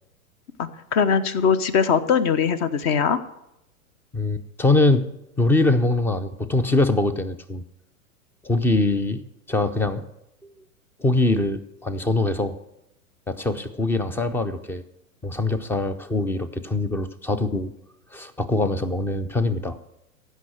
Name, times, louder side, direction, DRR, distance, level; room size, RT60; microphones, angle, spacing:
voice 1, 0.6-3.2, left 6 dB, 40° left, 14 dB, 1.0 m, -21 dB
voice 2, 4.1-5.0 5.4-7.6 8.4-9.2 9.5-10.0 11.0-12.6 13.3-14.8 15.2-17.7 18.1-19.8, left 2 dB, 5° left, 13 dB, 0.4 m, -23 dB
15.0 x 5.7 x 7.8 m, 0.83 s
hypercardioid pair, 105°, 43 cm